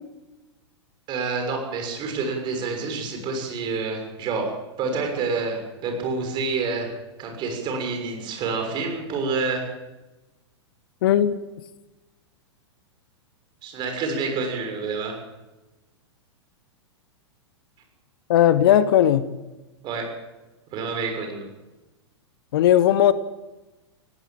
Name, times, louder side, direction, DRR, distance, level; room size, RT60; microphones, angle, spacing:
voice 1, 1.1-6.9 7.2-9.7 13.6-15.2 19.8-20.1 20.7-21.5, right 4 dB, 30° right, 6.4 m, -28 dB
voice 2, 11.0-11.4 18.3-19.2 22.5-23.1, left 11 dB, 55° left, 1.1 m, -17 dB
18.0 x 17.5 x 8.8 m
figure-of-eight pair, 100°, 15 cm